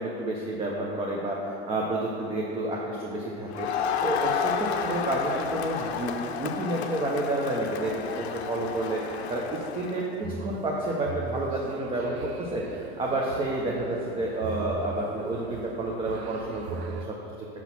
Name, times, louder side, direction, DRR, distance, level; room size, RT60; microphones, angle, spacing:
voice 1, 0.0-17.5, right 1 dB, 15° right, -2 dB, 0.6 m, -30 dB
Crowd, 3.5-10.1, left 7 dB, 80° left, 0.6 m, -31 dB
sound 1, 10.2-17.1, right 5 dB, 80° right, 0.6 m, -40 dB
6.1 x 3.9 x 5.8 m, 2.7 s
hypercardioid pair, 115°, 32 cm